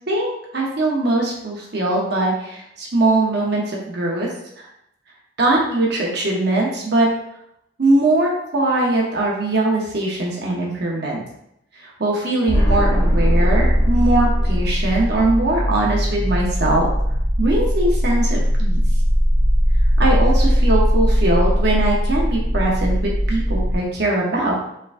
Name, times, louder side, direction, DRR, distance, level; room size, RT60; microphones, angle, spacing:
voice 1, 0.1-4.3 5.4-7.1 7.8-11.2 11.8-16.9 17.4-18.8 20.0-24.6, right 2 dB, 55° right, -2 dB, 0.8 m, -21 dB
sound 1, 12.5-23.8, equal, 15° left, 0.8 m, -19 dB
4.4 x 3.5 x 2.5 m, 0.78 s
head